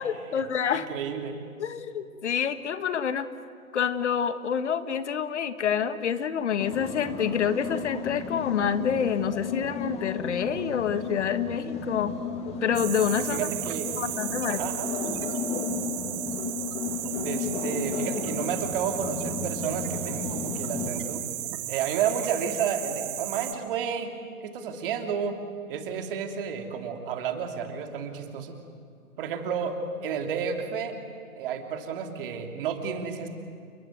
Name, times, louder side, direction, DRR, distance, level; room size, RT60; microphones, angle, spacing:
voice 1, 0.0-0.9 1.6-3.3 3.7-12.1 12.6-13.5 14.0-14.6, left 7 dB, 50° left, 12 dB, 1.5 m, -27 dB
voice 2, 0.7-1.4 13.3-13.9 14.5-14.9 17.1-21.2 21.7-24.1 24.4-25.4 25.7-28.6 29.2-31.0 31.3-33.3, right 7 dB, 40° right, 5 dB, 3.1 m, -31 dB
sound 1, 6.6-21.0, left 5 dB, 15° left, 2.1 m, -34 dB
sound 2, 12.7-23.5, right 16 dB, 20° right, 1.3 m, -35 dB
29.5 x 21.5 x 9.3 m, 2.3 s
figure-of-eight pair, 135°, 43 cm